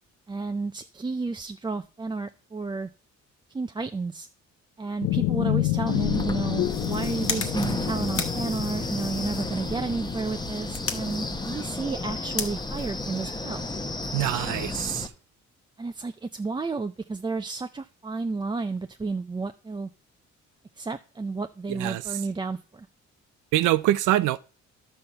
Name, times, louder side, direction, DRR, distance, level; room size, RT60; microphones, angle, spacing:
voice 1, 0.3-2.9 3.5-4.3 4.8-13.7 15.8-19.9 20.8-22.9, right 3 dB, 15° right, 0.4 m, -31 dB
sound 1, 5.0-11.6, left 17 dB, 90° left, 0.5 m, -30 dB
Wind, 5.9-15.1, left 2 dB, 15° left, 0.9 m, -32 dB
sound 2, 6.5-13.8, left 5 dB, 45° left, 1.4 m, -38 dB
voice 2, 14.1-15.1 21.8-22.0 23.5-24.4, right 14 dB, 85° right, 0.5 m, -24 dB
11.5 x 4.3 x 6.6 m
cardioid pair, 90°, 30 cm